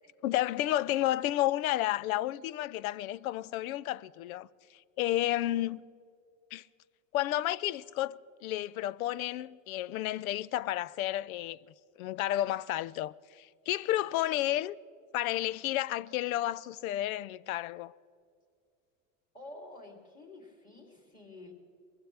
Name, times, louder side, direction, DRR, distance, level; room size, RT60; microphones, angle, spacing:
voice 1, 0.2-4.5 5.0-5.8 6.5-6.7 7.1-11.6 12.0-14.8 15.1-17.9, left 14 dB, 85° left, 0.5 m, -31 dB
voice 2, 19.3-21.5, left 2 dB, 20° left, 3.0 m, -50 dB
21.5 x 16.0 x 3.4 m
supercardioid pair, 105°, 41 cm